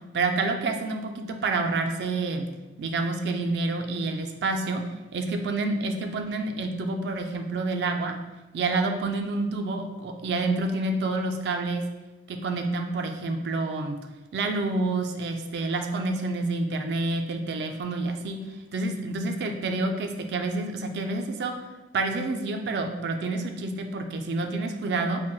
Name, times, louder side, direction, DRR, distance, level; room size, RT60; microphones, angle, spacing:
voice 1, 0.1-2.5 2.8-4.8 5.1-8.1 8.5-11.8 12.3-14.0 14.3-18.4 18.7-21.5 21.9-25.2, right 3 dB, 70° right, 4 dB, 0.3 m, -28 dB
3.9 x 2.1 x 2.2 m, 1.1 s
head